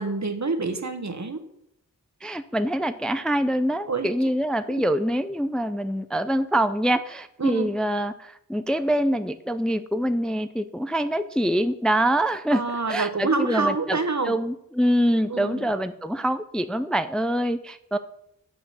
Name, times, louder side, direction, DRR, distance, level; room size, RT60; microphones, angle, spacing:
voice 1, 0.0-1.4 3.9-4.1 4.7-4.8 7.4-7.7 12.5-14.4 15.3-15.7, right 3 dB, 55° right, 8 dB, 1.4 m, -27 dB
voice 2, 2.2-12.6 12.9-14.0 14.2-18.0, right 1 dB, ahead, 10 dB, 0.5 m, -25 dB
10.5 x 7.3 x 6.3 m, 0.78 s
wide cardioid pair, 70°, 34 cm